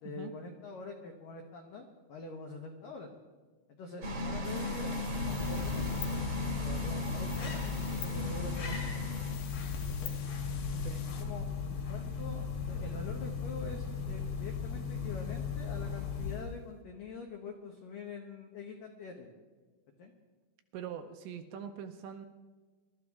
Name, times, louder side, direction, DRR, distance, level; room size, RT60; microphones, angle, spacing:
voice 1, 0.0-3.2 3.8-5.0 5.3-6.0 6.5-9.0 10.0-10.2 11.2-11.5 11.9-19.3 20.0-20.1, left 4 dB, 85° left, 2 dB, 1.9 m, -45 dB
sound 1, 4.0-9.3, left 1 dB, 60° right, 1.6 m, -37 dB
sound 2, 4.4-11.2, left 8 dB, 65° left, 2.9 m, -48 dB
sound 3, 4.9-16.7, left 6 dB, 50° left, 2.2 m, -37 dB
voice 2, 10.8-11.1 20.7-22.3, right 8 dB, 80° right, 6 dB, 2.8 m, -43 dB
23.5 x 13.0 x 3.6 m, 1.4 s
omnidirectional pair, 5.7 m